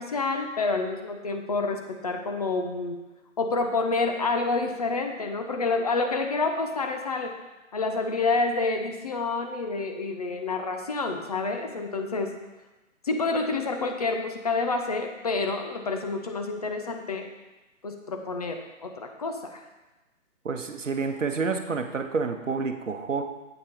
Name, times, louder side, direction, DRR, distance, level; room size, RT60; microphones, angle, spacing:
voice 1, 0.0-3.0 3.4-7.3 7.7-12.3 13.0-17.3 17.8-19.6, left 3 dB, 30° left, 4 dB, 0.7 m, -28 dB
voice 2, 20.4-23.2, right 4 dB, 65° right, 6 dB, 1.0 m, -29 dB
8.4 x 5.5 x 5.1 m, 1.1 s
figure-of-eight pair, 140°, 40 cm